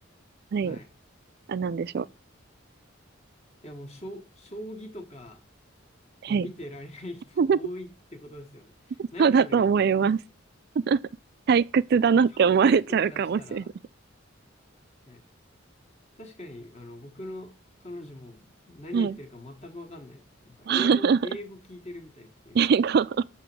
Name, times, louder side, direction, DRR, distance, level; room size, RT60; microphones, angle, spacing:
voice 1, 1.5-2.1 6.2-6.5 7.4-7.6 9.0-10.2 10.8-11.0 11.5-13.6 18.9-19.2 20.7-21.2 22.5-23.2, right 6 dB, 55° right, 0.3 m, -22 dB
voice 2, 3.6-5.4 6.3-9.7 12.0-13.7 15.1-15.2 16.2-17.5 17.8-22.8, left 1 dB, 35° left, 1.4 m, -42 dB
7.7 x 3.0 x 6.0 m
head